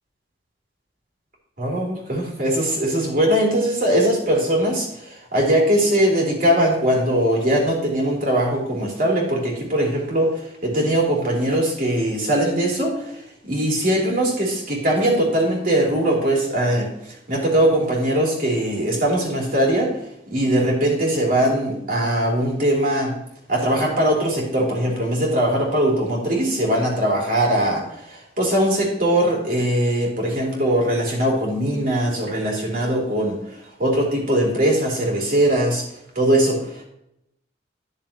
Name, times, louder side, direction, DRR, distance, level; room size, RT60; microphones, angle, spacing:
voice 1, 1.6-16.9 17.3-19.9 20.3-23.1 23.5-33.4 33.8-35.8 36.1-36.8, right 1 dB, 50° right, -2 dB, 3.1 m, -21 dB
11.0 x 6.8 x 2.9 m, 0.78 s
head